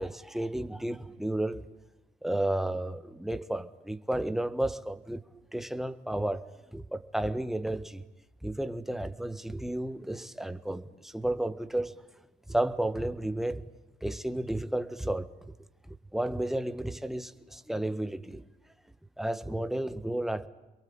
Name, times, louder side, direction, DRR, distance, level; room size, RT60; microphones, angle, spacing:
voice 1, 0.0-1.6 2.2-5.2 5.5-6.5 6.7-8.0 8.4-11.9 12.5-13.6 14.0-15.3 15.9-18.4 19.2-20.5, right 1 dB, ahead, 1.5 m, -32 dB
28.5 x 22.5 x 9.0 m
cardioid pair, 110°, 17 cm